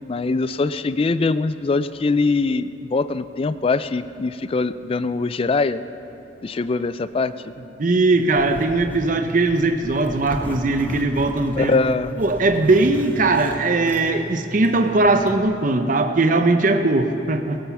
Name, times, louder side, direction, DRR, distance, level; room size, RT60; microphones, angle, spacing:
voice 1, 0.1-5.8 6.4-7.3 11.6-12.1, left 3 dB, 30° left, 14 dB, 0.3 m, -22 dB
voice 2, 7.8-11.7 12.2-17.6, right 2 dB, 45° right, 6 dB, 0.7 m, -19 dB
Zipper (clothing), 8.1-15.4, equal, 10° left, 1.2 m, -36 dB
17.0 x 7.8 x 7.0 m, 2.9 s
head